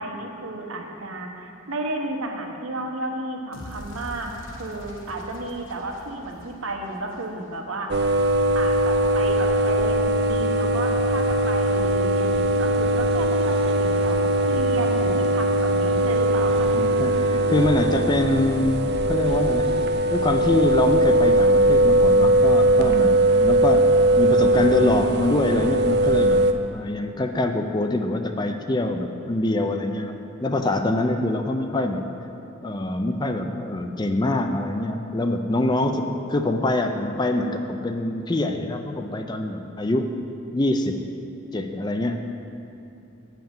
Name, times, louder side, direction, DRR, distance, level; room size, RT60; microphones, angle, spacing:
voice 1, 0.0-7.9 8.5-16.7, right 2 dB, 80° right, 2 dB, 1.0 m, -32 dB
sound 1, 3.5-7.8, left 1 dB, 65° left, 1.3 m, -43 dB
sound 2, 7.9-26.5, right 1 dB, 50° right, 0.4 m, -20 dB
sound 3, 11.7-24.6, right 1 dB, 30° right, 0.8 m, -40 dB
voice 2, 16.7-19.8 20.1-23.9 24.2-26.4 26.7-30.1 30.4-32.0 32.6-40.1 40.5-41.0 41.5-42.3, left 2 dB, 20° left, 6 dB, 0.4 m, -24 dB
8.5 x 5.8 x 7.1 m, 2.8 s
head